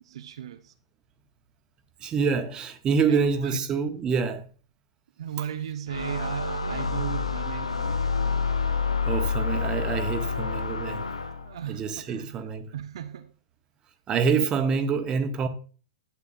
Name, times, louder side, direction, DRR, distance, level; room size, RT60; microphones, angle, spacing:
voice 1, 0.0-0.7 3.1-3.6 5.2-8.0 11.4-12.5 12.7-13.3, right 10 dB, 65° right, 0.6 m, -36 dB
voice 2, 2.0-4.5 9.0-11.1 11.7-12.7 14.1-15.5, right 5 dB, 25° right, 1.1 m, -26 dB
sound 1, 5.9-11.6, left 5 dB, 85° left, 0.8 m, -28 dB
12.0 x 8.2 x 2.6 m
figure-of-eight pair, 105°, 3 cm